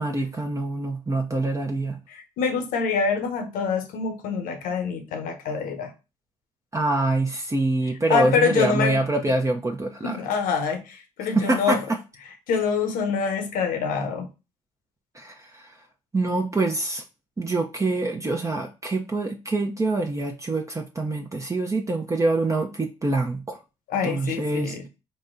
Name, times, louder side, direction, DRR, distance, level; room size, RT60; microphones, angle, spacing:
voice 1, 0.0-2.0 6.7-10.2 11.3-12.0 15.1-15.7 16.1-17.0 17.4-23.6 24.0-24.9, right 2 dB, 20° right, 0.6 m, -25 dB
voice 2, 2.1-5.9 8.1-9.0 10.0-11.8 12.5-14.3 23.9-24.9, left 5 dB, 75° left, 0.9 m, -25 dB
4.1 x 2.2 x 3.8 m
supercardioid pair, 55°, 14 cm